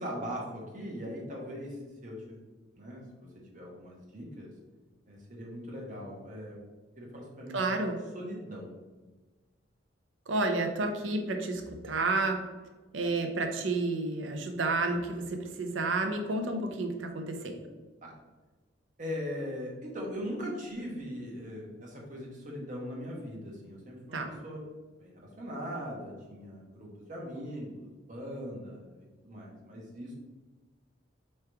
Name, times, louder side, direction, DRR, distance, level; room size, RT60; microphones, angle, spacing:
voice 1, 0.0-2.4 2.7-4.5 5.1-6.6 7.0-7.6 8.1-8.7 18.0-18.1 19.0-24.6 25.0-30.1, equal, 40° right, -2 dB, 1.2 m, -40 dB
voice 2, 7.5-8.0 10.3-12.4 12.9-17.6 24.1-24.3, right 2 dB, 80° right, 4 dB, 0.7 m, -30 dB
3.5 x 3.2 x 4.5 m, 1.3 s
head